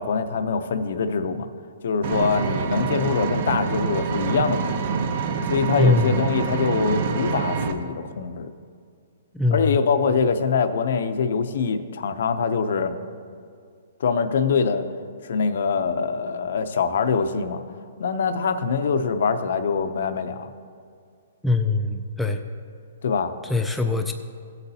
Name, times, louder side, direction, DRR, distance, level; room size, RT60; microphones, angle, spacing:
voice 1, 0.0-1.5 1.8-4.8 5.5-8.5 9.5-13.0 14.0-14.9 15.2-17.6 18.0-20.5 23.0-23.3, left 5 dB, 60° left, 9 dB, 0.6 m, -24 dB
Vehicle, 2.0-7.7, right 6 dB, 40° right, 0.6 m, -26 dB
voice 2, 5.8-6.3 9.3-9.8 21.4-22.4 23.5-24.1, left 2 dB, 5° left, 3 dB, 0.3 m, -22 dB
16.0 x 8.1 x 2.8 m, 2.2 s
hypercardioid pair, 170°, 0 cm